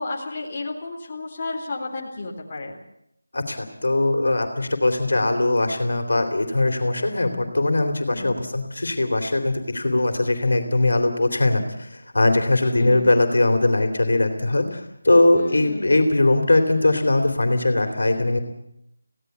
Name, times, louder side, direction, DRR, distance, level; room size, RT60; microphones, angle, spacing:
voice 1, 0.0-2.8 8.1-8.4 12.6-13.1 15.3-16.0, left 2 dB, 30° left, -1 dB, 3.6 m, -32 dB
voice 2, 3.3-18.4, left 2 dB, 70° left, 6 dB, 3.6 m, -20 dB
21.0 x 17.0 x 8.3 m, 0.77 s
figure-of-eight pair, 170°, 0 cm